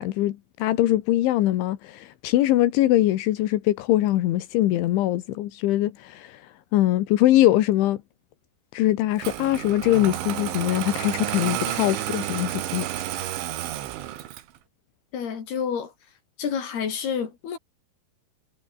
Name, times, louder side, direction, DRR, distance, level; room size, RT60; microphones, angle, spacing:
voice 1, 0.0-8.0 8.7-13.3, left 14 dB, 85° left, 3.8 m, -22 dB
Engine starting, 9.2-14.6, right 13 dB, 85° right, 4.2 m, -31 dB
voice 2, 15.1-15.9 16.4-17.6, left 7 dB, 60° left, 6.0 m, -29 dB
omnidirectional pair, 5.3 m